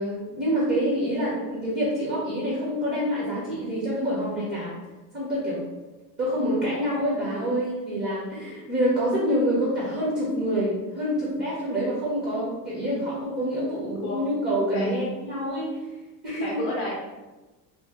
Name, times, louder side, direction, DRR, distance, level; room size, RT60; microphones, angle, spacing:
voice 1, 0.0-4.7 5.1-5.6 6.2-15.8 16.2-16.6, equal, 25° right, -7 dB, 0.7 m, -26 dB
voice 2, 16.4-16.9, left 2 dB, 35° left, -4 dB, 0.5 m, -31 dB
2.8 x 2.4 x 3.5 m, 1.1 s
cardioid pair, 175°, 40 cm